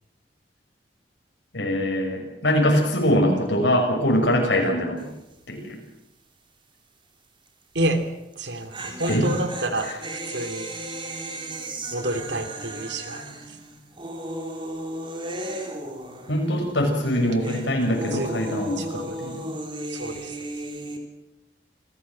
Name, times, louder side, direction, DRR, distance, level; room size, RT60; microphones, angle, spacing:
voice 1, 1.5-5.1 5.5-5.7 9.1-9.3 16.3-19.4, equal, 90° left, 2 dB, 6.4 m, -23 dB
sound 1, 5.0-5.3 5.6-5.7 8.3-16.7 17.0-21.0, right 1 dB, 30° right, 3.4 m, -35 dB
voice 2, 7.7-8.0 8.4-10.7 11.9-13.6 18.1-18.5 18.8-19.2 19.9-20.4, right 1 dB, 80° right, 8 dB, 3.0 m, -29 dB
27.0 x 16.0 x 7.6 m, 0.93 s
head